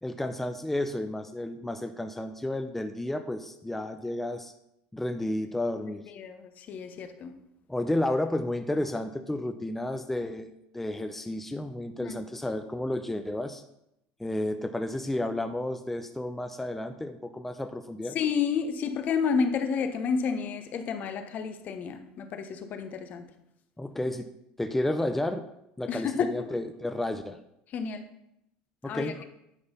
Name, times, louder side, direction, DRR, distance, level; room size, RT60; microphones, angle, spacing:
voice 1, 0.0-4.5 4.9-6.0 7.7-13.6 14.2-18.2 23.8-24.3 24.6-25.5 25.8-27.4 28.8-29.2, left 1 dB, 5° left, 7 dB, 0.5 m, -32 dB
voice 2, 6.7-7.3 18.1-23.2 25.9-26.3 27.7-28.0 28.8-29.1, left 6 dB, 50° left, 9 dB, 0.9 m, -30 dB
10.0 x 4.0 x 5.4 m, 0.81 s
supercardioid pair, 100°, 4 cm